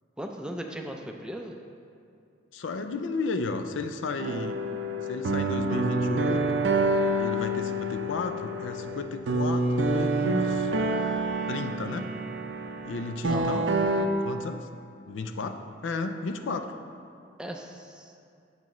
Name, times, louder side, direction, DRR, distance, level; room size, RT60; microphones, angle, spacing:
voice 1, 0.2-1.6 13.3-13.7 17.4-18.1, equal, 5° right, 2 dB, 0.4 m, -37 dB
voice 2, 2.5-4.6 5.1-6.6 7.2-10.7 11.5-12.1 12.8-13.7 14.2-14.7 15.0-16.7, left 3 dB, 80° left, 7 dB, 0.4 m, -33 dB
sound 1, 4.2-14.1, right 2 dB, 70° right, 0.5 m, -27 dB
7.8 x 7.3 x 3.1 m, 2.4 s
head